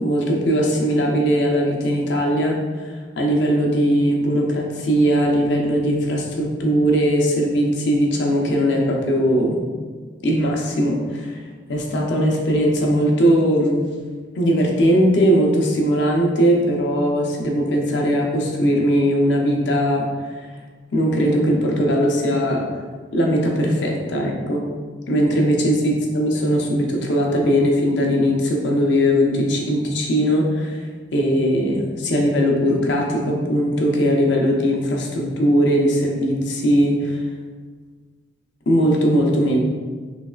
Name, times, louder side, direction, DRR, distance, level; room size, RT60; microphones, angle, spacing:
voice 1, 0.0-9.6 10.2-13.9 14.3-20.5 20.9-22.8 23.1-24.6 25.1-37.3 38.7-39.7, equal, 70° left, 0 dB, 0.6 m, -19 dB
3.3 x 3.0 x 2.3 m, 1.5 s
head